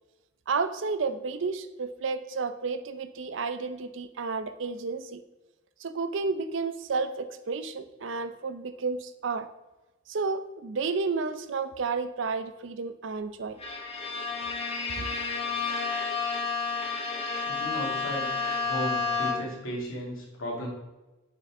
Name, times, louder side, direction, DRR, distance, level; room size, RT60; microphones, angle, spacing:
voice 1, 0.5-5.2 5.8-9.5 10.1-13.6 15.0-15.1, right 4 dB, 65° right, 11 dB, 0.5 m, -31 dB
Bowed string instrument, 13.6-19.7, left 4 dB, 30° left, 1.3 m, -31 dB
voice 2, 17.4-18.3 18.6-20.7, equal, 85° left, -3 dB, 2.5 m, -35 dB
7.1 x 5.5 x 3.7 m, 1.1 s
head